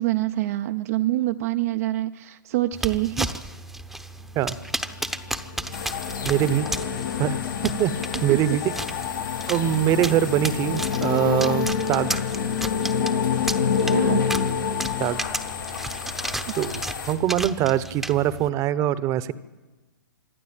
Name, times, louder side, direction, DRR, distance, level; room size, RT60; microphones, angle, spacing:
voice 1, 0.0-3.3 8.3-8.4 13.8-14.4, right 16 dB, 45° right, 7 dB, 0.6 m, -26 dB
sound 1, 2.7-18.5, right 1 dB, ahead, 0.8 m, -34 dB
sound 2, 5.1-15.8, left 7 dB, 60° left, 1.2 m, -27 dB
sound 3, 5.7-17.1, left 6 dB, 85° left, 4.0 m, -35 dB
voice 2, 6.2-6.7 7.2-7.3 7.6-7.9 8.2-8.7 9.5-12.2 15.0-15.3 16.5-16.7 17.1-19.3, right 12 dB, 30° right, 16 dB, 0.9 m, -23 dB
25.5 x 12.0 x 9.0 m, 1.2 s
hypercardioid pair, 125°, 11 cm